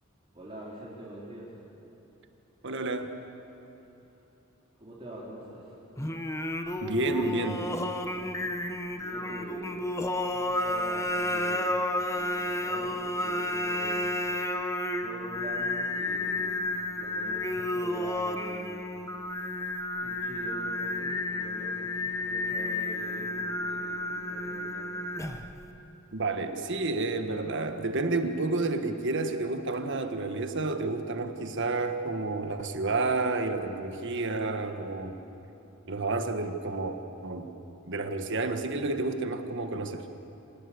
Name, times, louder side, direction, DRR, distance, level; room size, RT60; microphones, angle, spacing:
voice 1, 0.3-1.5 4.8-5.7 8.4-8.7 9.0-9.9 10.3-16.7 17.0-18.9 20.0-24.9, right 1 dB, 30° right, -6 dB, 3.5 m, -44 dB
voice 2, 2.6-3.2 6.8-7.7 26.1-35.2 35.9-37.0 37.2-37.5 37.9-40.0, right 3 dB, 60° right, 7 dB, 1.6 m, -30 dB
Singing, 6.0-25.6, left 1 dB, 15° left, 1.1 m, -31 dB
26.0 x 18.5 x 8.4 m, 3.0 s
head